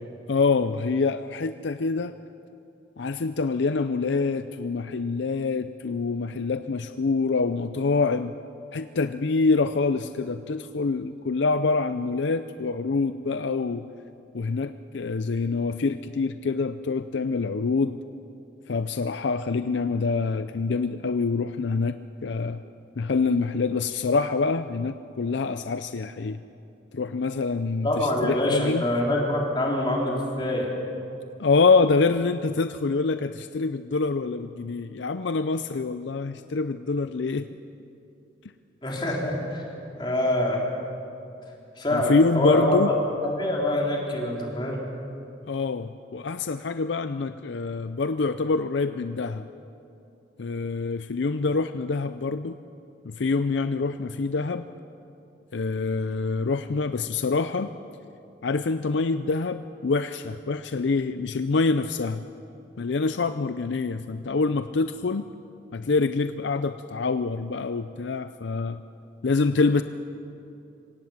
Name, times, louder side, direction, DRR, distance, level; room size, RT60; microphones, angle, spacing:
voice 1, 0.3-2.1 3.0-8.3 8.7-13.9 14.3-18.0 18.7-22.6 23.0-26.4 26.9-28.8 31.4-37.5 41.9-42.9 45.5-49.5 50.4-52.6 53.0-54.7 55.5-57.7 58.4-62.2 62.8-65.3 65.7-68.8 69.2-69.8, left 4 dB, 70° left, 11 dB, 0.5 m, -26 dB
voice 2, 27.8-30.7 38.8-39.6 40.0-40.6 41.8-42.9 43.2-44.8, left 1 dB, 25° left, -2 dB, 3.8 m, -25 dB
26.0 x 17.0 x 7.3 m, 2.7 s
head